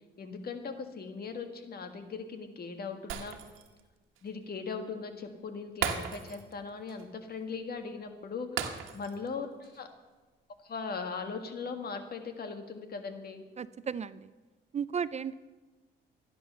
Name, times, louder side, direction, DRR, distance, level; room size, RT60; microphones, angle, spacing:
voice 1, 0.2-3.4 4.2-8.7 8.9-9.9 10.6-13.4, left 5 dB, 50° left, 6 dB, 1.9 m, -39 dB
Shatter, 3.1-3.8 4.2-4.3 5.8-6.6 6.9-7.0 8.6-9.3 9.6-9.8, right 8 dB, 90° right, 1.4 m, -36 dB
voice 2, 13.6-14.3 14.7-15.3, right 7 dB, 35° right, 16 dB, 0.4 m, -34 dB
13.5 x 10.5 x 6.8 m, 1.2 s
cardioid pair, 90°, 20 cm